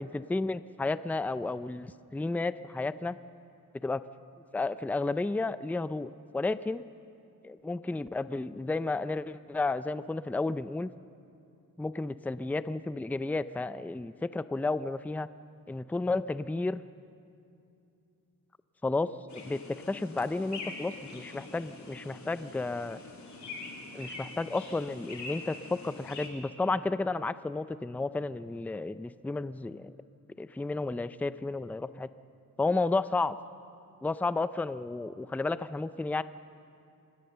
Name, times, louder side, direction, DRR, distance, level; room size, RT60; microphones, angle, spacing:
voice 1, 0.0-3.2 3.8-4.0 4.5-6.9 7.4-10.9 11.8-15.3 15.7-16.8 18.8-19.1 19.3-19.6 19.9-23.0 23.9-29.9 30.4-32.1 32.6-33.4 34.0-36.2, left 3 dB, 5° left, 14 dB, 0.4 m, -32 dB
sound 1, 19.3-26.3, left 3 dB, 55° left, 3.3 m, -44 dB
25.5 x 19.5 x 6.8 m, 2.6 s
wide cardioid pair, 125°, 34 cm